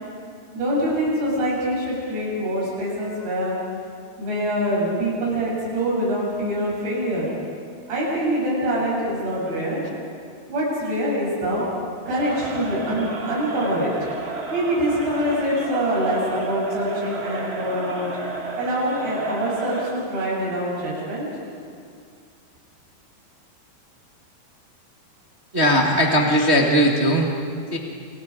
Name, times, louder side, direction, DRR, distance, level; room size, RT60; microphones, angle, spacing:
voice 1, 0.5-3.6 4.2-7.3 7.9-9.8 10.5-11.7 12.1-13.9 14.5-18.1 18.6-21.3, equal, 85° right, -5 dB, 10.0 m, -24 dB
Crowd, 12.0-20.1, right 2 dB, 65° right, 0.6 m, -32 dB
voice 2, 25.5-27.3 27.7-27.8, equal, 35° right, -1 dB, 0.9 m, -18 dB
29.5 x 29.5 x 5.0 m, 2.3 s
omnidirectional pair, 4.6 m